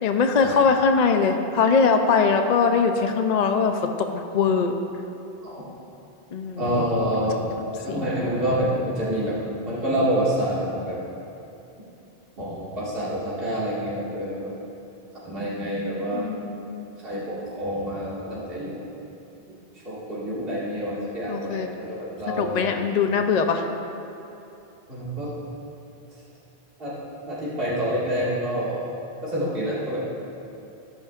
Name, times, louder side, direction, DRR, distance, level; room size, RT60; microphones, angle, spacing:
voice 1, 0.0-4.8 6.3-6.8 7.9-8.0 16.1-16.8 21.3-21.7 22.4-23.7, left 5 dB, 50° left, 5 dB, 0.6 m, -22 dB
voice 2, 6.6-7.4 7.8-9.3 9.6-11.0 12.4-14.5 15.2-16.3 17.0-18.8 19.8-22.9 24.9-25.3 26.8-26.9 27.3-28.9 29.2-30.1, equal, 65° right, -9 dB, 2.3 m, -27 dB
14.5 x 11.5 x 2.5 m, 2.8 s
omnidirectional pair, 1.0 m